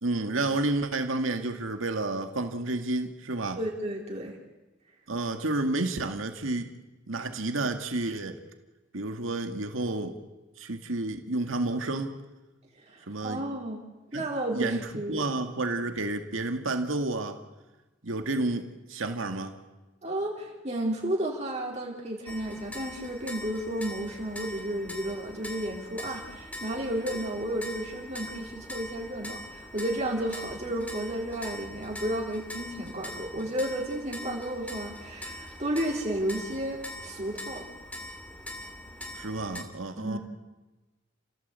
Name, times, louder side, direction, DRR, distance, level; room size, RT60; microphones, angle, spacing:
voice 1, 0.0-3.6 5.1-6.7 7.1-8.4 8.9-10.1 10.6-12.1 13.1-13.4 14.1-14.2 14.5-14.8 15.1-17.4 18.0-19.6 39.1-40.2, right 2 dB, 85° right, 6 dB, 2.1 m, -30 dB
voice 2, 3.6-4.4 12.8-13.9 14.1-15.3 20.0-37.7 40.0-40.2, right 1 dB, 35° right, -1 dB, 3.6 m, -32 dB
sound 1, 22.3-39.6, left 1 dB, 5° left, 2.8 m, -42 dB
29.5 x 16.5 x 8.3 m, 1.1 s
head